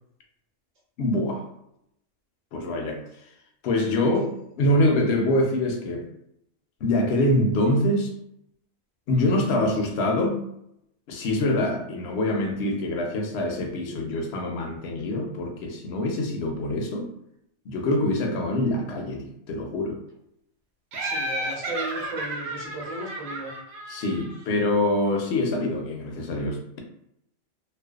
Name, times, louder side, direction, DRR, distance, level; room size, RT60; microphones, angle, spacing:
voice 1, 1.0-1.5 2.5-3.0 3.6-6.1 6.8-8.1 9.1-10.4 11.1-17.1 17.7-20.0 23.9-26.8, left 1 dB, 65° left, 0.7 m, -25 dB
Laughter, 20.9-24.6, right 1 dB, 85° right, 1.0 m, -32 dB
voice 2, 21.0-23.5, right 1 dB, 40° right, 0.8 m, -36 dB
2.5 x 2.1 x 2.3 m
omnidirectional pair, 1.4 m